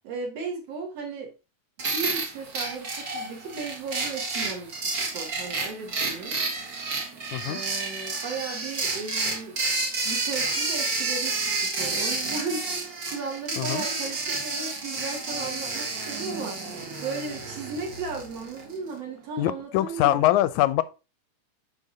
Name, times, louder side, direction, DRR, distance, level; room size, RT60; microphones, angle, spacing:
voice 1, 0.0-1.3 1.9-6.4 7.4-16.7 17.0-20.4, right 4 dB, 55° right, 2.7 m, -36 dB
sound 1, 1.8-18.8, right 3 dB, 40° right, 1.5 m, -30 dB
voice 2, 7.3-7.6 13.6-13.8 19.4-20.8, left 14 dB, 80° left, 1.8 m, -23 dB
9.6 x 3.8 x 3.7 m
omnidirectional pair, 3.6 m